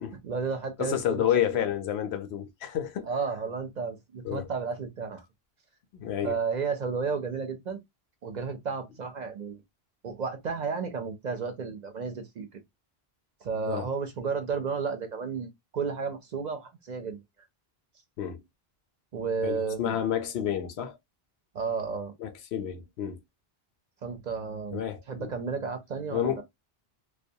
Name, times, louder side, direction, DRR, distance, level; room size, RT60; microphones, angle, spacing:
voice 1, 0.2-1.3 3.0-5.3 6.2-7.8 8.2-9.6 10.0-12.6 13.4-17.2 19.1-20.0 21.5-22.1 24.0-26.4, right 5 dB, 55° right, 0.6 m, -32 dB
voice 2, 0.8-3.1 4.2-4.5 5.9-6.3 13.7-13.8 18.2-18.4 19.4-21.0 22.2-23.2 24.7-25.3 26.1-26.4, left 10 dB, 90° left, 0.8 m, -30 dB
2.3 x 2.2 x 2.6 m
omnidirectional pair, 1.0 m